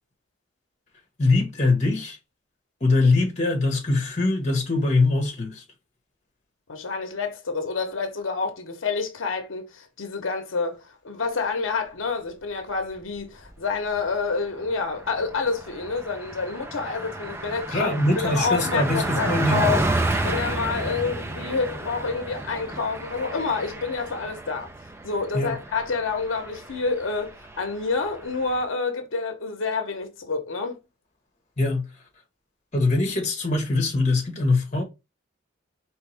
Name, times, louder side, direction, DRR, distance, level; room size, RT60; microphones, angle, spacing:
voice 1, 1.2-2.2 2.8-5.6 17.7-19.7 25.3-25.6 31.6-31.9 32.7-34.8, left 2 dB, 35° left, 1.3 m, -22 dB
voice 2, 6.7-19.8 20.2-24.7 25.0-30.8, left 4 dB, 90° left, 0.9 m, -28 dB
Car passing by, 13.0-13.6 13.9-14.1 14.4-28.6, right 2 dB, 10° right, 0.4 m, -31 dB
4.5 x 3.3 x 3.3 m
head